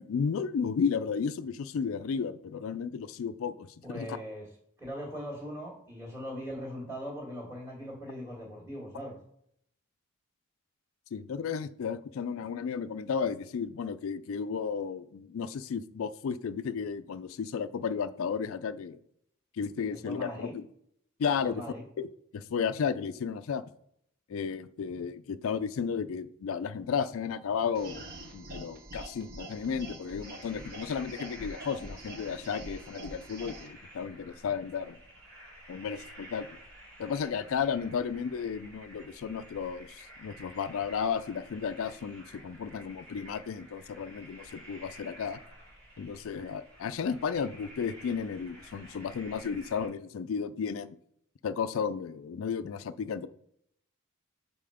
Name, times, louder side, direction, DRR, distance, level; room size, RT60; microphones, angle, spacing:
voice 1, 0.0-4.2 11.1-19.0 19.5-20.7 21.2-21.6 22.0-22.1 22.3-23.6 24.3-28.1 28.3-35.0 35.7-36.5 37.0-45.4 46.0-50.9 51.4-53.3, left 6 dB, 65° left, 13 dB, 0.3 m, -33 dB
voice 2, 3.8-4.5 4.8-9.2 19.9-20.5 21.4-21.8, equal, 10° right, -6 dB, 1.7 m, -40 dB
sound 1, 27.7-33.7, right 1 dB, 45° right, 1.1 m, -45 dB
sound 2, 30.2-49.9, right 1 dB, 65° right, 2.4 m, -52 dB
5.7 x 4.2 x 4.9 m, 0.72 s
head